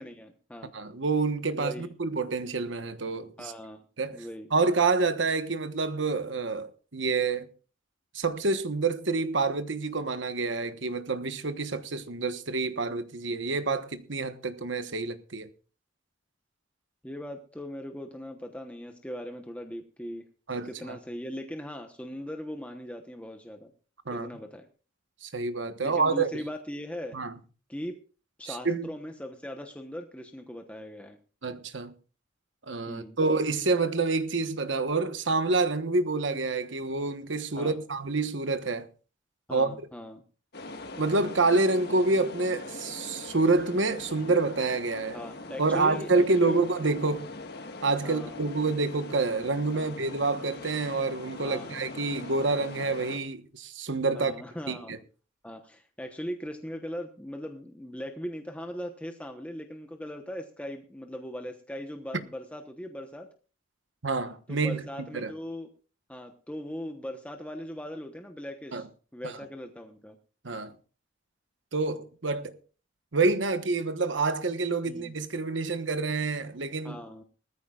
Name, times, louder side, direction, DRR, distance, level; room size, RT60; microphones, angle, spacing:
voice 1, 0.0-0.7 1.5-1.8 3.4-3.8 4.1-4.5 17.0-20.2 20.6-23.7 24.1-24.7 25.8-27.2 27.7-27.9 28.4-31.2 32.9-33.2 37.6-37.8 39.5-40.2 44.3-44.4 45.1-46.6 48.0-48.5 49.7-49.9 51.4-51.8 54.1-54.9 55.4-63.3 64.5-65.7 66.1-68.9 69.1-70.2 74.9-75.2 76.8-77.2, equal, 5° left, 1.0 m, -39 dB
voice 2, 0.7-3.5 4.0-4.2 4.5-7.5 8.1-15.5 20.5-21.0 24.1-24.3 25.2-26.4 27.1-27.3 28.5-28.9 31.4-31.9 32.7-38.9 39.5-39.7 41.0-45.2 45.6-47.3 47.8-54.4 54.7-55.0 64.0-64.8 65.1-65.3 68.7-68.8 69.2-69.3 70.4-70.7 71.7-72.6 73.1-77.0, right 3 dB, 70° right, 1.2 m, -28 dB
sound 1, 40.5-53.2, left 2 dB, 55° left, 1.6 m, -42 dB
20.0 x 14.0 x 2.4 m
head